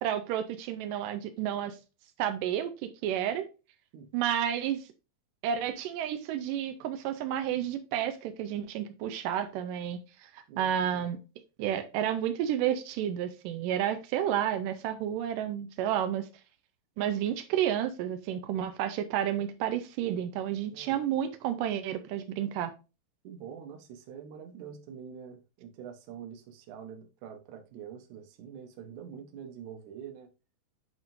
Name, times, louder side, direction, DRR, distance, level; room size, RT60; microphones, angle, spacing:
voice 1, 0.0-1.8 2.2-3.5 4.1-4.9 5.4-11.2 11.6-16.3 17.0-22.7, right 10 dB, 85° right, 1.9 m, -31 dB
voice 2, 10.5-11.1 20.7-21.0 23.2-30.3, right 8 dB, 70° right, 2.0 m, -45 dB
10.5 x 3.6 x 2.5 m
omnidirectional pair, 4.5 m